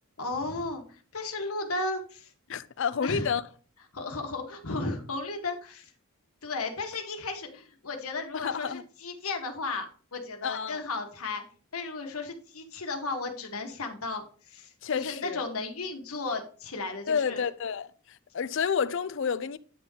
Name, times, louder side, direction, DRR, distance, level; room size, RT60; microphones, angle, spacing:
voice 1, 0.2-2.3 3.0-3.3 3.9-5.9 6.4-9.9 10.1-11.4 11.7-17.4, left 3 dB, 75° left, 1.4 m, -34 dB
voice 2, 2.5-3.4 8.3-8.8 10.4-10.8 14.8-15.4 17.1-17.9 18.3-19.6, left 6 dB, 55° left, 0.4 m, -29 dB
9.3 x 3.7 x 5.6 m
head